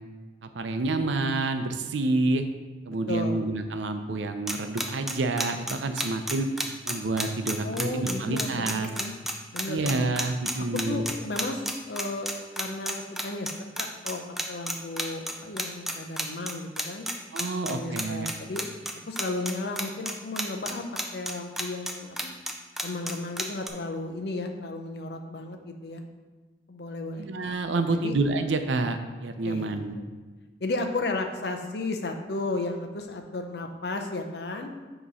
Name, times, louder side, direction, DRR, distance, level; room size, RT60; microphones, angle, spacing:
voice 1, 0.4-2.4 2.9-6.5 6.9-8.9 9.7-11.1 17.3-18.3 27.2-30.0, right 2 dB, 90° right, 7 dB, 0.5 m, -28 dB
voice 2, 3.1-3.5 7.6-9.1 9.5-10.1 10.9-13.5 13.8-14.2 14.5-17.1 17.7-18.6 19.1-20.8 21.1-22.3 22.8-26.0 26.7-27.3 27.9-28.1 29.4-29.7 30.6-34.7, left 2 dB, 60° left, 4 dB, 0.6 m, -34 dB
sound 1, 4.5-23.7, equal, ahead, 0.4 m, -30 dB
6.2 x 3.0 x 5.4 m, 1.3 s
head